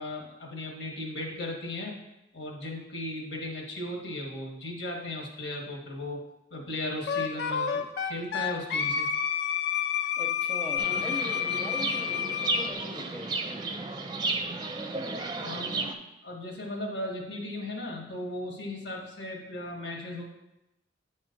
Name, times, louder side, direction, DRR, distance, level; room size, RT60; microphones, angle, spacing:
voice 1, 0.0-2.0 2.3-6.2 6.5-9.1 15.4-20.2, left 1 dB, 90° left, -1 dB, 1.6 m, -36 dB
Wind instrument woodwind instrument, 7.1-12.7, left 8 dB, 65° left, 0.5 m, -29 dB
voice 2, 10.2-13.8, left 1 dB, 10° left, -1 dB, 0.8 m, -40 dB
Chirp tweet, 10.8-15.9, right 3 dB, 25° right, 0.5 m, -33 dB
8.4 x 3.2 x 5.2 m, 0.92 s
head